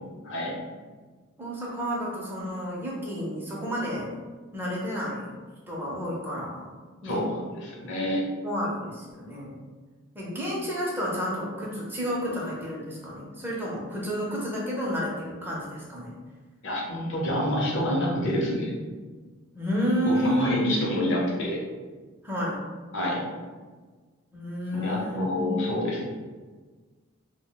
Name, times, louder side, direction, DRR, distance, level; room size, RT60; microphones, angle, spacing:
voice 1, 0.2-0.6 7.0-8.2 16.6-18.7 20.1-21.6 22.9-23.2 24.7-26.0, equal, 60° left, -3 dB, 0.8 m, -27 dB
voice 2, 1.4-4.1 4.5-5.3 5.7-6.7 7.0-7.2 8.4-9.6 10.1-16.1 19.6-20.5 22.2-22.6 24.3-25.6, equal, 10° right, -5 dB, 0.6 m, -30 dB
2.4 x 2.2 x 3.9 m, 1.4 s
head